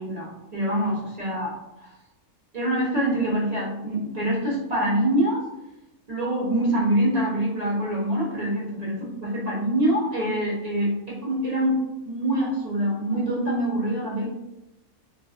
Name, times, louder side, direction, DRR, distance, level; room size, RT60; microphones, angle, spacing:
voice 1, 0.0-1.5 1.8-1.9 2.5-5.4 6.1-11.8 12.0-14.3, right 1 dB, 50° right, -6 dB, 0.5 m, -25 dB
2.7 x 2.3 x 2.3 m, 0.94 s
omnidirectional pair, 1.5 m